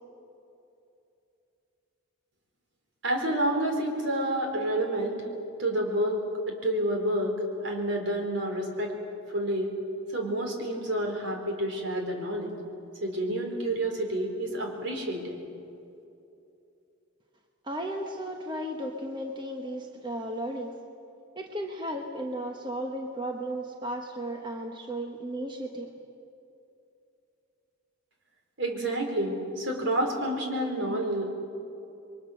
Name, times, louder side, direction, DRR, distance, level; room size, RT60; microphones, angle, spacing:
voice 1, 3.0-5.2 5.6-6.2 6.5-7.3 7.6-8.9 9.3-9.7 10.1-12.5 13.0-15.4 28.6-31.2, right 1 dB, 70° right, 2 dB, 4.3 m, -29 dB
voice 2, 17.6-20.7 21.4-25.9, right 1 dB, 20° right, 2 dB, 1.2 m, -35 dB
29.0 x 23.0 x 6.5 m, 2.8 s
head